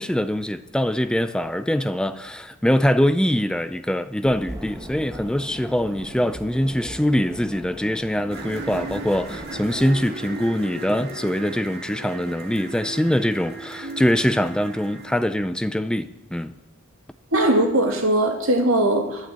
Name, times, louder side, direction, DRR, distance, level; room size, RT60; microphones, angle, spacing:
voice 1, 0.0-16.5, equal, 5° left, 0.4 m, -23 dB
sound 1, 4.2-10.5, right 1 dB, 15° right, 1.5 m, -38 dB
sound 2, 8.3-15.1, right 2 dB, 50° right, 1.9 m, -36 dB
voice 2, 17.3-19.3, right 1 dB, 90° right, 2.7 m, -20 dB
12.5 x 8.9 x 8.1 m
head